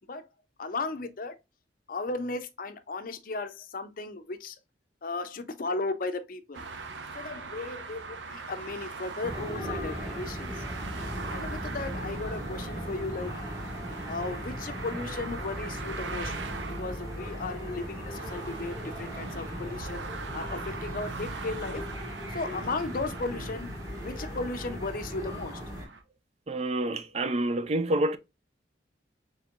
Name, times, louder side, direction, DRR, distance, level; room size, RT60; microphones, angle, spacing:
voice 1, 0.6-1.3 1.9-4.6 5.0-6.6 7.1-10.5 11.3-13.3 14.1-16.4 16.7-20.0 20.3-21.8 22.3-23.7 24.0-25.6, left 3 dB, 50° left, 0.6 m, -35 dB
sound 1, 6.5-26.0, right 4 dB, 85° right, 0.7 m, -42 dB
sound 2, 9.2-25.9, equal, 20° right, 1.3 m, -38 dB
voice 2, 26.5-28.2, right 1 dB, 35° right, 0.4 m, -28 dB
4.4 x 3.5 x 2.4 m
head